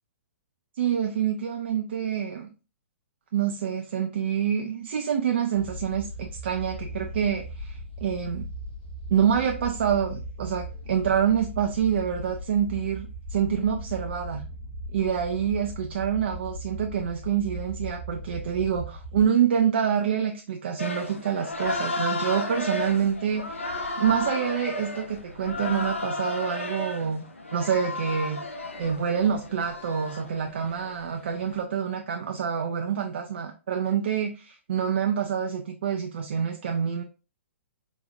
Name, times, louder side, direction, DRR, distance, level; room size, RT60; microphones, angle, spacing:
voice 1, 0.8-2.5 3.3-8.5 9.1-14.5 14.9-23.6 24.0-27.2 27.5-28.4 28.8-37.0, right 8 dB, 55° right, 0.4 m, -27 dB
sound 1, 5.5-19.3, equal, 35° left, 1.9 m, -38 dB
sound 2, 20.8-31.6, left 2 dB, 75° left, 0.6 m, -33 dB
4.0 x 2.3 x 2.4 m
figure-of-eight pair, 120°, 7 cm